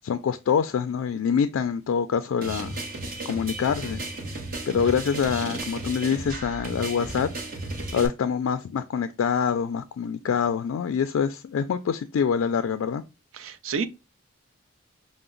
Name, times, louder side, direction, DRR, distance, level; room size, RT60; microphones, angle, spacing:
voice 1, 0.0-2.8 3.2-4.0 4.7-7.3 7.9-13.0, left 7 dB, 70° left, 0.3 m, -25 dB
sound 1, 2.4-8.1, right 2 dB, 45° right, 0.9 m, -34 dB
voice 2, 13.3-13.9, right 5 dB, 70° right, 0.5 m, -30 dB
5.7 x 2.0 x 3.7 m
head